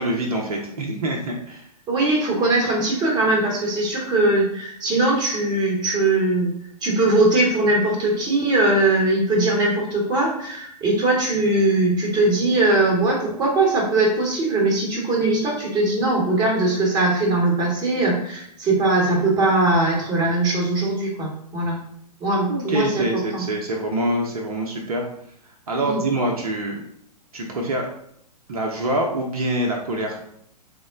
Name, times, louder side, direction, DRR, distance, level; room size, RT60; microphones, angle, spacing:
voice 1, 0.0-1.7 22.5-25.1 25.7-26.8 27.3-27.9 28.5-30.2, right 1 dB, 60° right, 0 dB, 0.7 m, -25 dB
voice 2, 1.9-6.5 6.8-21.8 22.2-23.1 23.3-23.4 25.8-26.0, right 2 dB, 20° right, -2 dB, 1.1 m, -20 dB
3.6 x 2.1 x 3.6 m, 0.70 s
figure-of-eight pair, 110°, 21 cm